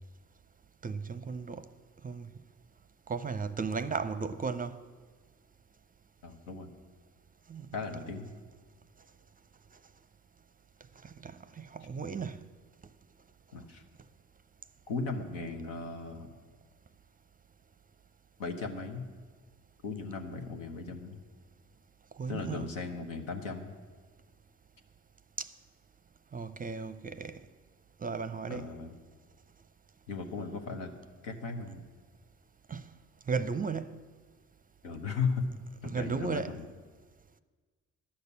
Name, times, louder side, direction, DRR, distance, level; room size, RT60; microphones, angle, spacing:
voice 1, 0.8-1.7 2.0-2.3 3.1-4.8 7.5-7.7 11.0-12.4 22.2-22.7 25.4-25.5 26.3-27.4 28.0-28.7 32.7-32.8 33.3-34.0 35.8-36.6, right 5 dB, 25° right, 0.5 m, -35 dB
voice 2, 6.2-6.7 7.7-8.3 13.5-13.8 14.9-16.3 18.4-19.1 19.8-21.2 22.3-23.7 28.5-28.9 30.1-30.9 31.2-31.8 34.8-35.5 35.8-36.7, left 4 dB, 80° left, 1.1 m, -36 dB
11.5 x 6.6 x 8.4 m
hypercardioid pair, 45°, 38 cm